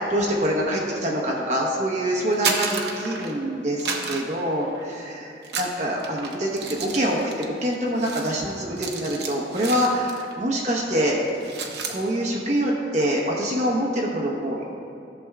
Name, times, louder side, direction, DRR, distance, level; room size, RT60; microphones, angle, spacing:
voice 1, 0.1-7.2 7.5-11.2 11.9-14.6, equal, 40° right, -2 dB, 1.0 m, -25 dB
sound 1, 2.2-3.5 3.8-5.0 5.4-10.4 10.6-10.9 11.2-12.0, right 4 dB, 65° right, 0.8 m, -32 dB
14.5 x 6.9 x 2.4 m, 2.7 s
head